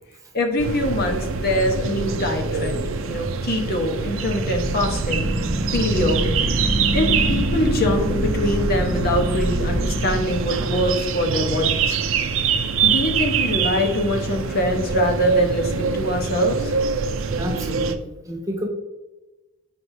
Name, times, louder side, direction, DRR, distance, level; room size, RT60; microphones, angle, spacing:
voice 1, 0.3-5.3 5.7-12.0 12.8-16.7, left 1 dB, 50° left, 3 dB, 1.1 m, -24 dB
sound 1, 0.6-18.0, right 5 dB, 75° right, 0.5 m, -25 dB
sound 2, 4.3-11.0, equal, 40° right, 1.2 m, -25 dB
voice 2, 17.4-18.7, equal, 15° right, 2 dB, 0.7 m, -30 dB
7.8 x 5.4 x 2.8 m, 1.1 s
head